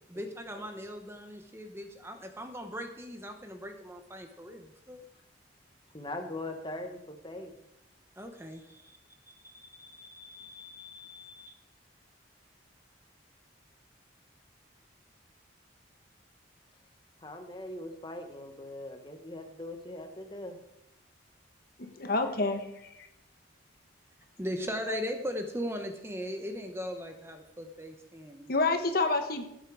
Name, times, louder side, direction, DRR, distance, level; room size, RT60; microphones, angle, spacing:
voice 1, 0.1-5.0 8.2-9.0 9.3-11.5 24.4-28.5 29.0-29.1, equal, 15° right, 5 dB, 1.0 m, -39 dB
voice 2, 5.9-7.5 17.2-20.6, left 1 dB, 25° left, 5 dB, 1.4 m, -41 dB
voice 3, 21.8-23.1 24.6-25.0 28.5-29.4, left 3 dB, 50° left, 6 dB, 1.2 m, -29 dB
17.0 x 7.9 x 4.9 m, 0.85 s
head